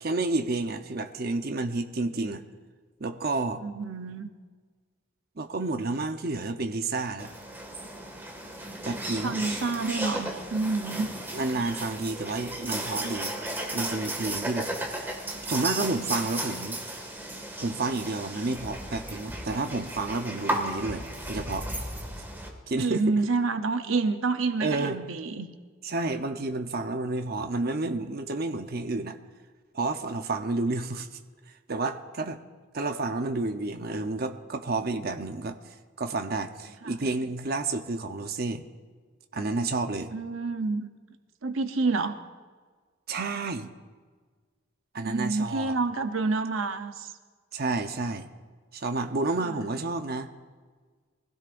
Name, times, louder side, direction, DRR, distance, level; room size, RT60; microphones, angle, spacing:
voice 1, 0.0-2.4 3.0-3.6 5.4-7.3 8.8-9.4 11.3-13.3 13.7-15.1 15.5-16.8 17.6-21.7 22.7-23.0 24.6-25.0 25.8-29.2 29.7-31.2 31.7-32.4 32.7-35.6 36.0-38.6 39.3-40.1 43.1-43.7 44.9-45.7 47.5-48.3 48.7-50.3, right 3 dB, 50° right, 6 dB, 0.8 m, -30 dB
voice 2, 3.6-4.3 9.2-11.1 20.8-21.0 22.8-25.5 36.8-37.1 40.1-40.9 41.4-42.2 45.1-47.1 49.4-49.6, right 3 dB, 80° right, 8 dB, 0.8 m, -28 dB
sound 1, 7.2-22.5, right 1 dB, 10° right, 1.9 m, -35 dB
23.5 x 16.0 x 2.6 m, 1.5 s
head